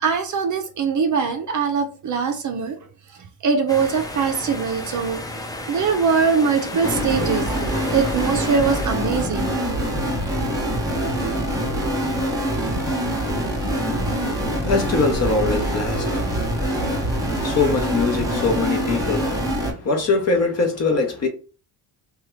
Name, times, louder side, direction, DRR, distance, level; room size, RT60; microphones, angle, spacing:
voice 1, 0.0-2.8 3.4-5.2 5.7-9.5 10.5-10.6, right 5 dB, 40° right, 0.5 m, -22 dB
sound 1, 3.7-8.9, left 1 dB, 10° left, 0.3 m, -33 dB
sound 2, 6.8-19.7, equal, 10° right, 0.8 m, -24 dB
voice 2, 13.2-21.3, left 4 dB, 35° left, 0.8 m, -24 dB
2.8 x 2.3 x 3.1 m
cardioid pair, 95°, 46 cm